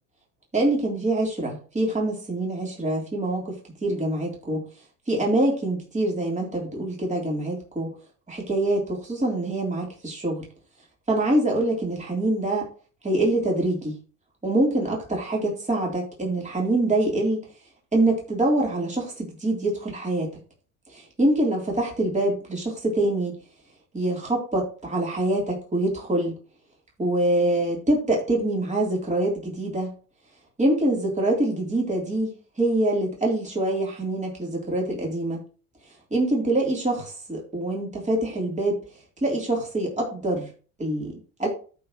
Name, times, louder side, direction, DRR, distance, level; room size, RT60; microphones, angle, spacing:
voice 1, 0.5-4.6 5.1-7.9 8.3-10.4 11.1-12.7 13.0-13.9 14.4-17.4 17.9-20.4 20.9-23.3 23.9-26.3 27.0-29.9 30.6-32.3 32.6-35.4 36.1-38.8 39.2-40.5 40.8-41.5, right 1 dB, 15° right, -2 dB, 3.3 m, -25 dB
13.0 x 4.8 x 3.1 m, 0.39 s
hypercardioid pair, 80°, 41 cm